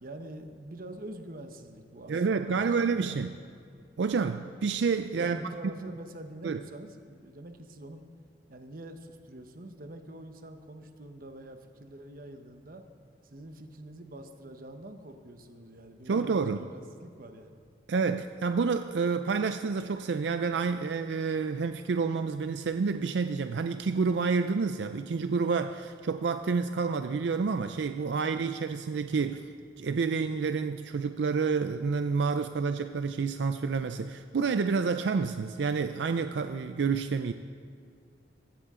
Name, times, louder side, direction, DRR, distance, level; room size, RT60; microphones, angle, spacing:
voice 1, 0.0-3.2 5.1-8.0 8.5-12.8 13.2-17.6, right 1 dB, 55° right, 6 dB, 1.0 m, -45 dB
voice 2, 2.1-3.3 4.0-5.4 5.8-5.9 6.4-6.6 16.1-16.6 17.9-29.5 29.8-37.3, right 5 dB, 85° right, 9 dB, 0.4 m, -29 dB
16.0 x 14.5 x 3.7 m, 2.3 s
head